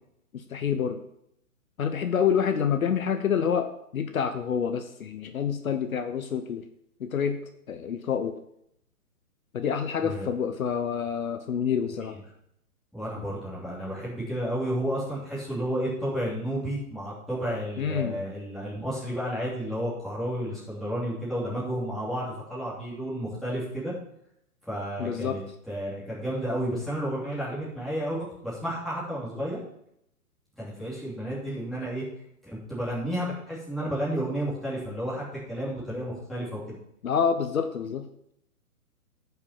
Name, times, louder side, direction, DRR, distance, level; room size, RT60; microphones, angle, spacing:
voice 1, 0.3-1.0 1.8-6.6 7.0-7.4 7.7-8.4 9.5-12.2 17.8-18.2 25.0-25.4 37.0-38.1, left 7 dB, 65° left, 8 dB, 1.1 m, -27 dB
voice 2, 12.9-23.9 24.6-25.4 25.7-29.6 30.6-32.1 32.4-36.6, equal, ahead, -9 dB, 2.8 m, -31 dB
11.5 x 5.9 x 5.7 m, 0.75 s
hypercardioid pair, 160°, 45 cm